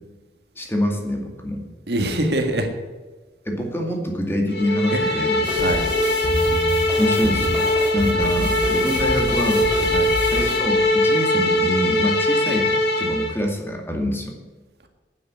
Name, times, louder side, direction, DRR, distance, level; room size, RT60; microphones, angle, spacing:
voice 1, 0.6-1.7 3.5-5.5 7.0-9.7 10.3-12.7 13.0-14.3, equal, 15° left, 2 dB, 2.1 m, -25 dB
voice 2, 1.9-2.7 4.9-5.8 9.9-10.1, right 1 dB, 70° right, 4 dB, 1.9 m, -24 dB
sound 1, 4.5-13.4, left 1 dB, 70° left, 2.8 m, -21 dB
sound 2, 5.4-10.6, equal, 5° right, 3.1 m, -28 dB
9.6 x 9.5 x 8.1 m, 1.3 s
head